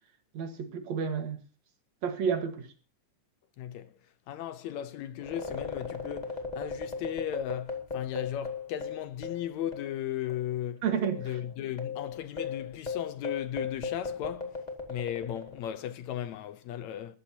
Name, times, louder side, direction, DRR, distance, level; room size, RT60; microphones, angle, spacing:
voice 1, 0.3-1.4 2.0-2.7 10.8-11.2, right 7 dB, 65° right, 2.7 m, -30 dB
voice 2, 3.6-3.9 4.3-10.8 11.2-14.6 14.9-17.2, left 11 dB, 75° left, 2.0 m, -36 dB
sound 1, 5.2-10.0 10.3-10.4 11.0-15.8, left 5 dB, 15° left, 1.7 m, -37 dB
21.0 x 13.5 x 2.8 m
omnidirectional pair, 3.5 m